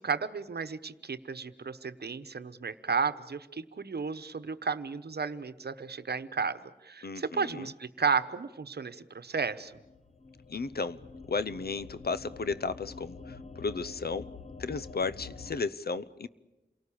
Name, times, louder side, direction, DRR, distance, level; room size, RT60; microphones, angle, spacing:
voice 1, 0.0-9.8, right 5 dB, 65° right, 1.1 m, -33 dB
voice 2, 7.0-7.7 10.5-11.0 11.3-14.3 14.6-16.3, left 4 dB, 60° left, 0.8 m, -34 dB
sound 1, 9.7-15.6, left 4 dB, 35° left, 0.9 m, -47 dB
28.0 x 18.5 x 8.7 m
wide cardioid pair, 85°, 18 cm